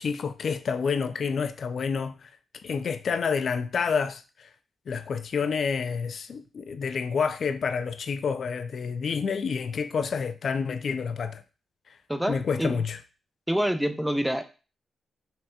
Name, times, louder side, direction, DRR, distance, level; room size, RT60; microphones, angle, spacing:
voice 1, 0.0-2.3 2.6-4.5 4.9-11.4 11.9-12.0 12.3-13.0, left 5 dB, 65° left, 0.3 m, -29 dB
voice 2, 12.1-12.8 13.5-14.5, equal, 5° right, 0.6 m, -27 dB
5.4 x 2.7 x 2.2 m
cardioid pair, 70°, 0 cm